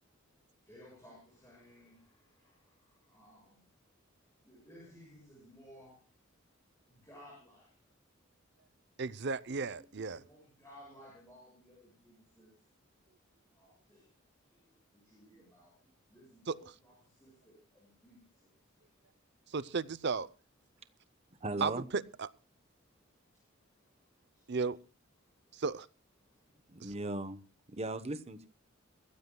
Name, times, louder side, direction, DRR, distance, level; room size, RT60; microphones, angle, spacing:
voice 1, 0.6-3.6 4.4-6.1 6.9-7.8 9.7-9.8 10.2-12.5 13.5-18.9 23.3-23.9 24.3-24.5 25.2-25.6 26.2-26.5, equal, 15° left, 6.8 m, -59 dB
voice 2, 9.0-10.2 16.5-16.6 19.5-20.3 21.6-22.3 24.5-24.8 25.5-25.9 26.8-26.9, right 4 dB, 55° right, 0.6 m, -34 dB
voice 3, 21.4-21.8 26.7-27.4 27.7-28.5, right 2 dB, 30° right, 1.0 m, -37 dB
23.0 x 15.0 x 2.3 m
head